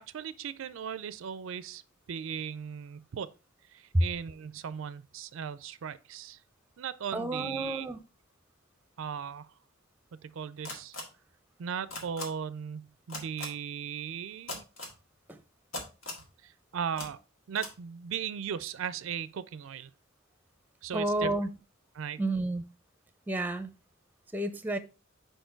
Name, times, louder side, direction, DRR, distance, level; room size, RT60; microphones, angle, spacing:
voice 1, 0.0-1.8 2.1-3.3 3.7-6.4 6.8-7.9 9.0-9.5 10.2-10.9 11.6-14.6 16.4-17.2 17.5-19.9 20.8-21.3 22.0-22.2, right 7 dB, 75° right, 0.4 m, -37 dB
voice 2, 7.1-8.0 15.3-15.4 20.9-21.6 22.2-22.6 23.3-23.7 24.3-24.8, right 1 dB, 10° right, 0.5 m, -30 dB
sound 1, 10.6-11.0 11.9-12.2 13.1-13.5 14.5-14.9 15.7-16.2 17.0-17.1 17.5-17.7, left 2 dB, 85° left, 1.8 m, -38 dB
5.0 x 4.4 x 4.4 m
head